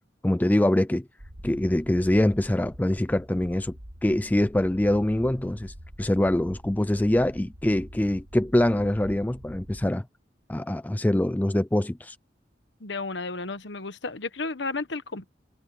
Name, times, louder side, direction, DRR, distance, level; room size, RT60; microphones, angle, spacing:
voice 1, 0.2-1.1 1.4-3.8 4.0-10.0 10.5-12.2, left 1 dB, 10° left, 0.4 m, -24 dB
sound 1, 1.2-9.9, equal, 60° right, 2.2 m, -45 dB
voice 2, 12.8-15.3, left 3 dB, 80° left, 1.3 m, -33 dB
head